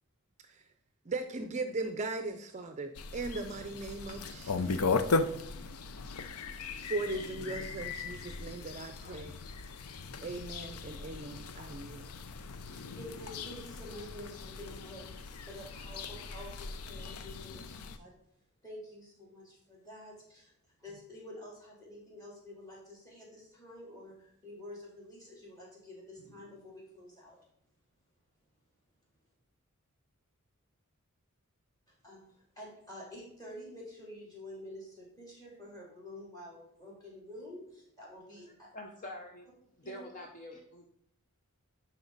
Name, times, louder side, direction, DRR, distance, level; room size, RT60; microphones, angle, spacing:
voice 1, 1.1-5.1 6.8-9.3 10.2-12.1, right 3 dB, 30° right, 7 dB, 0.5 m, -38 dB
sound 1, 2.9-18.0, left 4 dB, 85° left, 0.6 m, -37 dB
voice 2, 12.7-18.2 18.6-20.5 20.8-27.4 32.0-38.7 39.8-40.0, left 1 dB, 15° left, -3 dB, 3.1 m, -49 dB
voice 3, 38.7-39.5 39.8-40.9, left 1 dB, 35° left, 2 dB, 0.7 m, -45 dB
11.0 x 4.3 x 4.0 m, 0.73 s
head